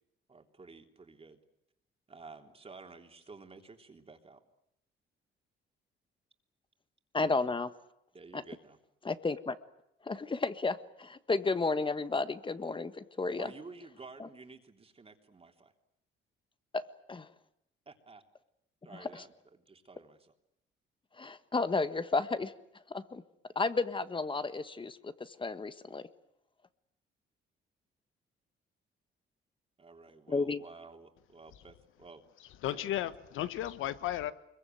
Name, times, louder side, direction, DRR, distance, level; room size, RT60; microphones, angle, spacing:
voice 1, 0.3-1.4 2.1-4.4 8.1-8.8 13.4-15.7 17.8-18.2 18.8-20.3 29.8-32.2 32.7-33.1, right 4 dB, 30° right, 3.3 m, -52 dB
voice 2, 7.1-7.7 8.3-8.4 9.0-9.6 10.1-13.5 16.7-17.3 21.2-22.5 22.9-23.2 23.5-26.0 30.3-30.6, left 3 dB, 25° left, 1.5 m, -32 dB
voice 3, 32.6-34.3, left 13 dB, 90° left, 1.3 m, -34 dB
24.5 x 22.5 x 9.3 m
cardioid pair, 90°, 20 cm